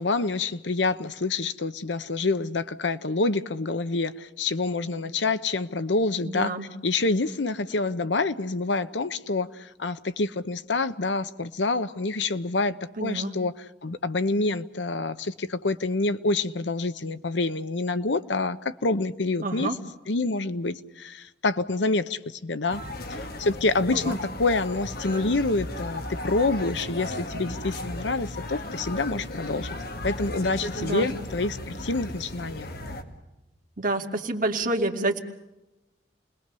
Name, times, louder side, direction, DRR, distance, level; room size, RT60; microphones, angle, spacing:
voice 1, 0.0-6.5 6.8-13.5 13.8-19.7 20.1-22.8 23.1-29.7 30.0-32.7, left 3 dB, 80° left, 0.9 m, -27 dB
voice 2, 6.3-6.7 13.0-13.3 19.4-19.8 23.9-24.2 30.8-31.1 33.8-35.2, right 2 dB, 50° right, 2.3 m, -28 dB
sound 1, 22.7-33.0, left 1 dB, 55° left, 2.2 m, -35 dB
29.0 x 20.5 x 6.9 m
head